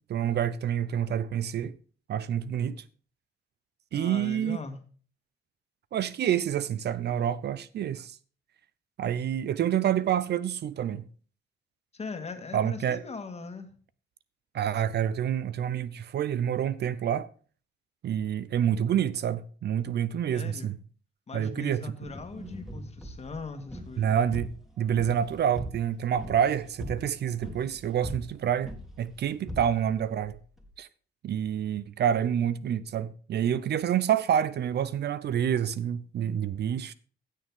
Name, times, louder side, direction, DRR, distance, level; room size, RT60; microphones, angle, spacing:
voice 1, 0.1-1.7 2.1-2.8 3.9-4.6 5.9-8.2 9.0-11.1 12.5-13.0 14.5-17.3 18.0-20.8 21.3-21.8 24.0-28.7 29.0-30.4 30.8-30.9 31.2-36.9, right 9 dB, 55° right, 0.6 m, -28 dB
voice 2, 3.9-4.8 11.9-13.7 20.3-20.7 21.3-24.2, left 4 dB, 35° left, 1.8 m, -40 dB
sound 1, 22.0-30.7, equal, ahead, 2.4 m, -42 dB
15.5 x 6.5 x 3.7 m
cardioid pair, 90°, 20 cm